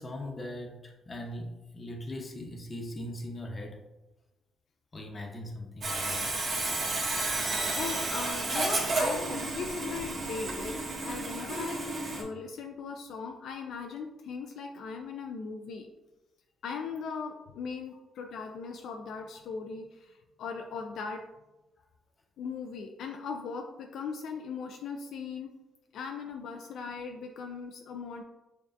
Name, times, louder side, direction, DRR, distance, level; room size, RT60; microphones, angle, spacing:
voice 1, 0.0-3.8 4.9-6.5, left 1 dB, 35° left, 1 dB, 0.9 m, -40 dB
Sawing, 5.8-12.2, right 2 dB, 45° right, 1.3 m, -31 dB
voice 2, 7.8-10.8 11.0-15.9 16.6-21.2 22.4-25.5 25.9-28.2, left 5 dB, 75° left, 3 dB, 0.4 m, -39 dB
6.9 x 2.3 x 2.6 m, 1.0 s
cardioid pair, 90°, 0 cm